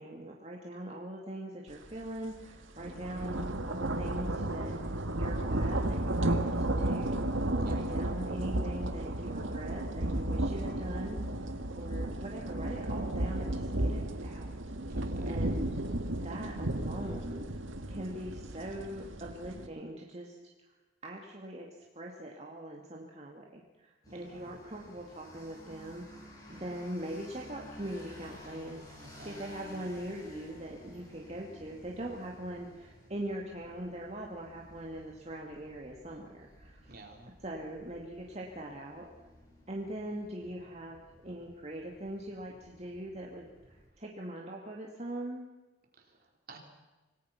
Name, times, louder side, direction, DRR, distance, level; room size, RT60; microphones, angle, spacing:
voice 1, 0.0-14.5 14.9-15.0 15.3-15.8 16.1-17.4 17.9-20.7 21.0-21.7 21.9-37.0 37.4-39.1 39.7-45.5, right 1 dB, 35° right, -1 dB, 2.3 m, -42 dB
sound 1, 1.9-2.0 2.4-19.7, right 1 dB, 80° right, 1.8 m, -33 dB
voice 2, 7.6-8.1 14.9-15.4 24.1-24.6 29.0-29.4 36.9-37.3 46.0-46.6, right 2 dB, 50° right, 2 dB, 4.0 m, -52 dB
sound 2, 24.0-43.9, equal, 20° left, 7.6 m, -54 dB
27.0 x 19.0 x 5.9 m, 1.2 s
head